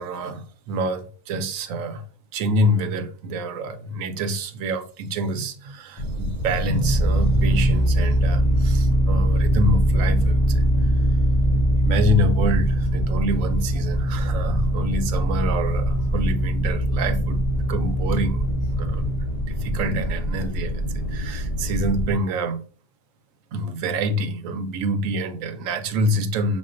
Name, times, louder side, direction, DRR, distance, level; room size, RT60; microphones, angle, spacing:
voice 1, 0.0-2.0 2.3-10.6 11.8-18.5 18.8-19.1 19.5-20.8 21.1-22.6 23.5-26.6, equal, 75° right, 1.0 m, -27 dB
sound 1, 6.0-22.2, right 1 dB, 40° left, 0.7 m, -22 dB
6.0 x 2.4 x 2.5 m
omnidirectional pair, 1.4 m